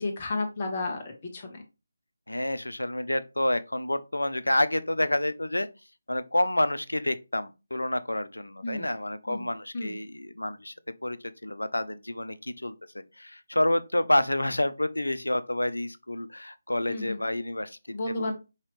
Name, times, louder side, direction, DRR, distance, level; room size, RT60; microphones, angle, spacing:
voice 1, 0.0-1.6 8.6-8.9 9.3-9.4 9.7-9.9 16.9-17.2 17.9-18.3, left 2 dB, 35° left, 1.4 m, -32 dB
voice 2, 2.3-5.7 6.1-10.7 11.0-12.7 13.2-17.8 18.1-18.3, left 1 dB, 85° left, 0.6 m, -28 dB
5.5 x 2.9 x 3.1 m
figure-of-eight pair, 155°, 0 cm